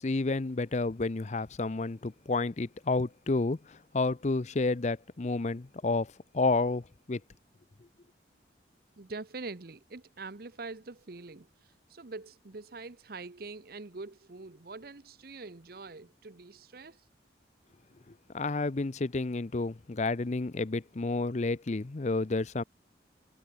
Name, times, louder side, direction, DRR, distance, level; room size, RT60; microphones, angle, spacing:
voice 1, 0.0-7.2 18.3-22.6, left 3 dB, 40° left, 0.6 m, -30 dB
voice 2, 9.0-11.5 11.9-17.0, right 3 dB, 55° right, 0.9 m, -44 dB
head